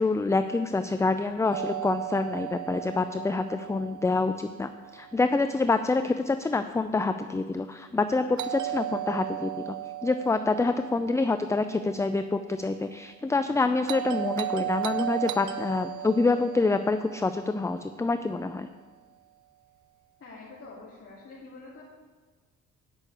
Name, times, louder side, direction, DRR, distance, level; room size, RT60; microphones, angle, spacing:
voice 1, 0.0-9.8 10.0-18.7, left 3 dB, 10° left, 9 dB, 0.4 m, -27 dB
Doorbell, 1.5-5.5 8.4-12.6 13.9-18.3, right 13 dB, 70° right, 0.6 m, -36 dB
voice 2, 20.2-21.8, left 3 dB, 45° left, -7 dB, 2.9 m, -46 dB
9.9 x 6.4 x 8.5 m, 1.4 s
cardioid pair, 90°, 30 cm